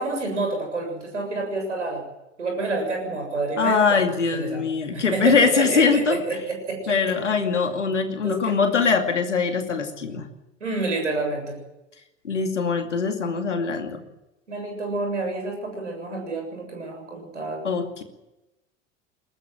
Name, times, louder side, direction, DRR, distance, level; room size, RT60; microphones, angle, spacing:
voice 1, 0.0-2.0 2.4-4.0 4.3-4.6 4.9-7.0 8.2-8.6 10.6-11.6 14.5-17.6, right 3 dB, 80° right, 3 dB, 7.3 m, -28 dB
voice 2, 3.6-6.4 6.9-10.3 12.2-14.1 17.6-18.0, left 5 dB, 75° left, 6 dB, 2.5 m, -22 dB
22.5 x 18.5 x 7.6 m, 0.96 s
figure-of-eight pair, 75°, 36 cm